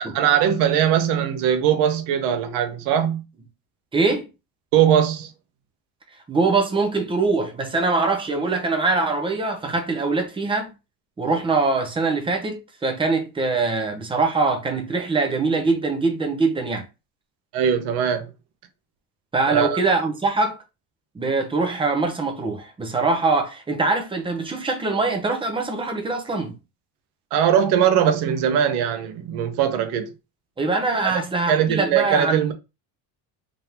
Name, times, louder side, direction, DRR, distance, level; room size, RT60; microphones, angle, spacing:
voice 1, 0.0-3.2 4.7-5.3 17.5-18.3 19.5-19.8 27.3-30.1 31.0-31.1 31.5-32.5, right 9 dB, 70° right, 1.0 m, -20 dB
voice 2, 3.9-4.3 6.3-10.7 11.2-16.9 19.3-20.6 21.1-26.5 30.6-32.5, right 3 dB, 10° right, 0.7 m, -23 dB
3.7 x 3.5 x 2.9 m
cardioid pair, 150°, 41 cm